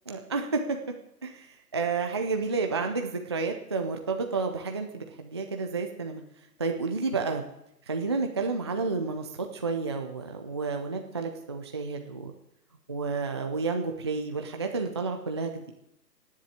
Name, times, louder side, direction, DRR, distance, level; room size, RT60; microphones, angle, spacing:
voice 1, 0.1-0.8 1.2-1.5 1.7-6.2 6.6-7.4 7.9-12.3 12.9-15.7, right 4 dB, 15° right, 4 dB, 0.5 m, -30 dB
18.0 x 7.5 x 8.2 m, 0.80 s
figure-of-eight pair, 135°, 49 cm